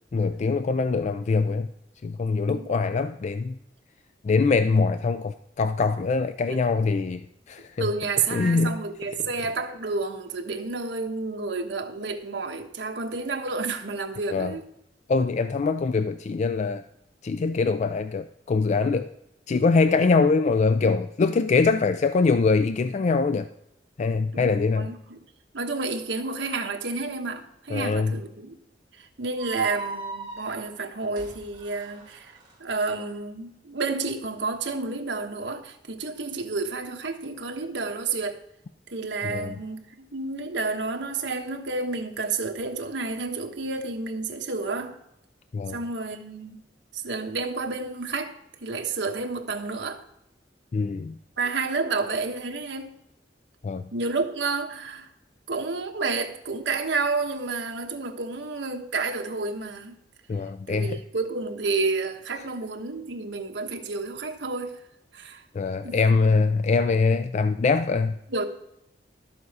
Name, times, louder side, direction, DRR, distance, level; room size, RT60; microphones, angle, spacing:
voice 1, 0.1-1.7 2.0-3.6 4.2-7.2 7.5-7.9 8.3-8.8 14.3-14.6 15.1-16.8 17.2-19.1 19.5-23.5 24.0-24.9 27.7-28.1 39.2-39.5 45.5-45.8 50.7-51.1 53.6-53.9 60.3-61.0 65.6-68.1, left 4 dB, 40° left, 0.3 m, -23 dB
voice 2, 2.5-3.0 6.5-6.6 7.8-14.7 24.3-25.2 25.5-28.6 29.0-38.4 38.9-45.0 45.7-46.6 46.9-50.0 51.4-53.0 53.9-55.1 55.5-60.0 60.7-64.8 65.1-65.4 65.8-66.0 68.3-68.4, right 3 dB, 80° right, 1.2 m, -30 dB
sound 1, 29.4-32.5, right 3 dB, 25° right, 2.8 m, -39 dB
12.0 x 7.1 x 4.8 m
head